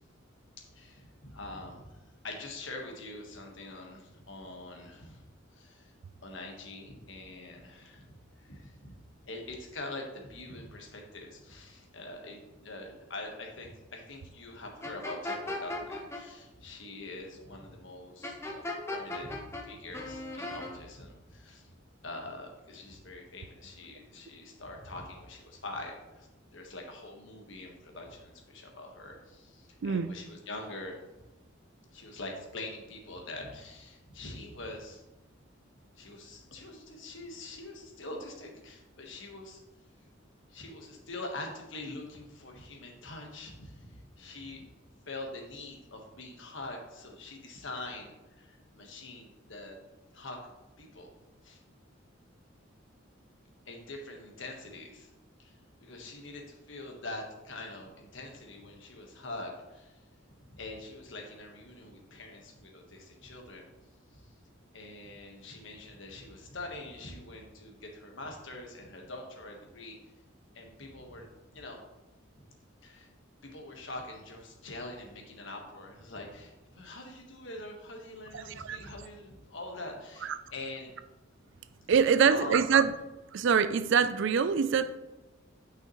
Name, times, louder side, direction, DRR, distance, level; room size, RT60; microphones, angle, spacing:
voice 1, 0.6-1.8 2.2-5.2 5.5-5.9 6.2-8.9 9.2-18.6 18.9-21.7 22.0-26.3 26.5-30.9 31.9-35.0 36.0-39.6 40.5-44.7 45.1-49.8 50.1-50.4 50.8-51.1 51.4-51.6 53.6-55.1 55.4-60.0 60.5-63.7 64.1-64.3 64.7-70.0 70.5-71.3 71.5-71.8 72.8-73.1 73.4-80.9 82.1-82.6, left 2 dB, 65° left, 1.3 m, -44 dB
sound 1, 14.8-16.2 18.2-19.6 19.9-20.7, left 2 dB, 15° left, 0.9 m, -37 dB
voice 2, 29.8-30.1 78.3-78.8 81.9-82.9 83.3-85.0, right 6 dB, 65° right, 0.4 m, -24 dB
9.0 x 5.7 x 3.1 m
head